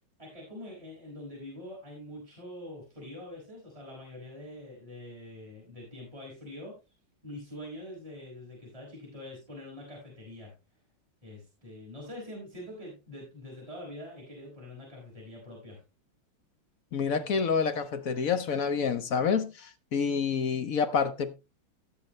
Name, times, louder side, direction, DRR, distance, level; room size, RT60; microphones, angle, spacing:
voice 1, 0.2-6.7 7.2-10.5 11.2-15.8, left 1 dB, 15° right, 5.7 m, -44 dB
voice 2, 16.9-21.3, left 6 dB, 55° left, 1.1 m, -28 dB
17.0 x 7.1 x 3.2 m
omnidirectional pair, 2.3 m